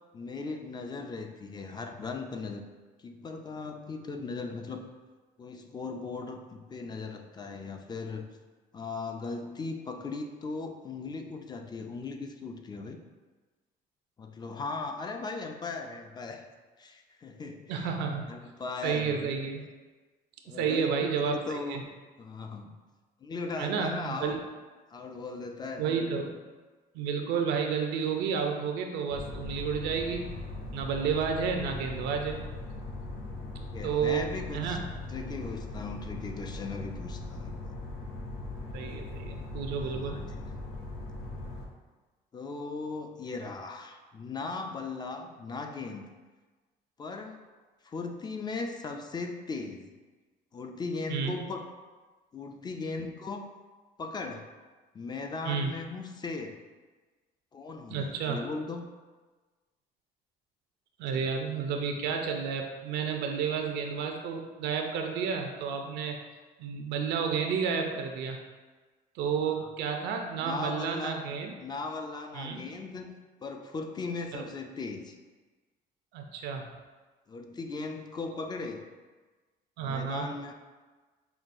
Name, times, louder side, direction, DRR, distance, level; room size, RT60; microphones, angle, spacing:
voice 1, 0.1-2.6 3.0-4.9 5.4-8.3 8.7-13.0 14.2-16.4 16.8-17.9 18.3-19.3 20.4-21.9 22.2-22.8 23.2-24.4 24.9-25.9 33.4-34.8 35.1-37.8 39.8-40.4 42.3-46.1 47.0-47.4 47.8-49.9 50.5-51.7 52.3-53.5 54.0-54.5 54.9-56.6 57.5-58.9 61.1-61.3 69.4-69.7 70.4-71.2 71.6-73.1 73.4-75.2 77.3-78.8 79.8-80.5, left 3 dB, 25° left, 4 dB, 0.4 m, -38 dB
voice 2, 17.7-18.3 18.8-19.6 20.5-21.8 23.6-24.4 25.8-26.3 26.9-30.3 30.7-32.4 33.8-34.3 34.5-34.8 38.7-40.2 51.1-51.4 55.5-55.7 57.9-58.4 61.0-66.2 66.6-68.4 69.2-71.5 72.3-72.6 74.3-74.5 76.1-76.7 79.8-80.3, right 6 dB, 85° right, 3 dB, 0.5 m, -31 dB
sound 1, 29.1-41.7, left 2 dB, 65° left, 0.7 m, -40 dB
5.6 x 2.3 x 2.5 m, 1.3 s
cardioid pair, 110°, 17 cm